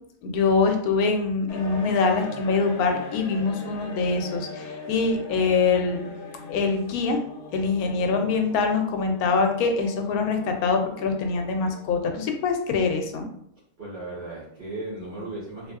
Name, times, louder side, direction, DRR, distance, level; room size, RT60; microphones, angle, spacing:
voice 1, 0.2-6.1 6.5-7.2 7.5-13.3, left 4 dB, 90° left, 4 dB, 1.1 m, -24 dB
sound 1, 1.5-12.7, left 3 dB, 60° left, 0.9 m, -41 dB
voice 2, 13.8-15.7, right 2 dB, 45° right, -10 dB, 1.3 m, -36 dB
3.4 x 2.6 x 2.3 m, 0.71 s
omnidirectional pair, 1.5 m